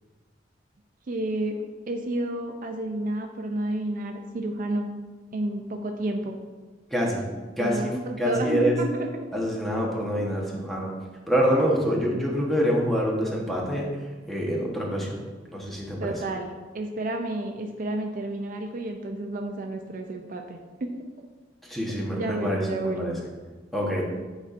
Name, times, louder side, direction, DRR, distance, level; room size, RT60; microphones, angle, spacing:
voice 1, 1.1-1.6 1.9-4.9 5.3-6.3 7.6-9.3 10.1-10.3 16.0-20.9 22.2-23.2, right 1 dB, 50° right, 4 dB, 0.4 m, -30 dB
voice 2, 7.6-8.7 9.3-10.9 11.3-13.9 14.3-15.1 15.5-16.0 21.7-23.1 23.7-24.0, equal, ahead, -3 dB, 1.1 m, -26 dB
9.6 x 4.1 x 2.5 m, 1.4 s
head